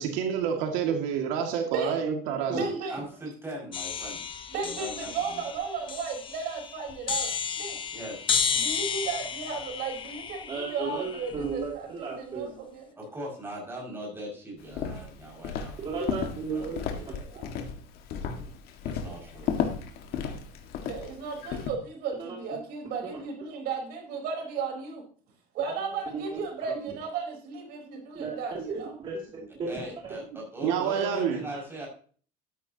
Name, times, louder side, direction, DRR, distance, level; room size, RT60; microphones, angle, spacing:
voice 1, 0.0-2.7 30.6-31.4, right 8 dB, 85° right, 3 dB, 2.2 m, -28 dB
voice 2, 1.7-2.0 2.5-3.0 4.5-7.8 8.5-12.8 17.3-17.5 19.1-19.2 20.9-25.0 25.5-29.0, right 5 dB, 60° right, 2 dB, 4.2 m, -35 dB
voice 3, 2.9-4.2 4.6-5.4 7.9-8.3 13.0-15.9 16.5-17.3 18.8-19.5 29.7-31.9, equal, 15° right, -2 dB, 5.9 m, -40 dB
sound 1, 3.7-11.7, left 6 dB, 30° left, 0.9 m, -33 dB
voice 4, 10.5-12.6 15.8-16.8 17.1-17.2 18.4-18.5 22.2-22.4 23.0-23.1 26.1-26.4 26.7-26.8 28.1-29.7 30.0-30.2 30.8-31.0, right 4 dB, 30° right, -3 dB, 2.6 m, -35 dB
Walk footsteps, 14.7-21.7, left 7 dB, 60° left, 1.8 m, -34 dB
13.0 x 10.0 x 2.9 m, 0.43 s
cardioid pair, 155°, 18 cm